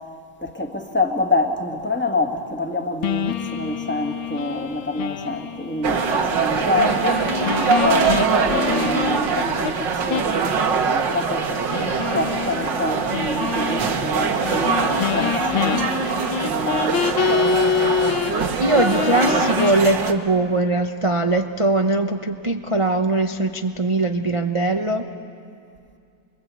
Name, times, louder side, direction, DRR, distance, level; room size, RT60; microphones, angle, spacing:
voice 1, 0.4-7.3 7.8-15.9 16.4-17.0, left 2 dB, 5° left, 1.4 m, -27 dB
sound 1, 3.0-9.7 10.1-10.4 10.7-10.8 11.7-18.5 18.7-19.7, left 8 dB, 75° left, 1.8 m, -26 dB
sound 2, 5.8-20.1, right 5 dB, 65° right, 1.9 m, -23 dB
voice 2, 18.6-25.1, right 2 dB, 35° right, 0.5 m, -21 dB
29.0 x 22.0 x 8.4 m
omnidirectional pair, 2.3 m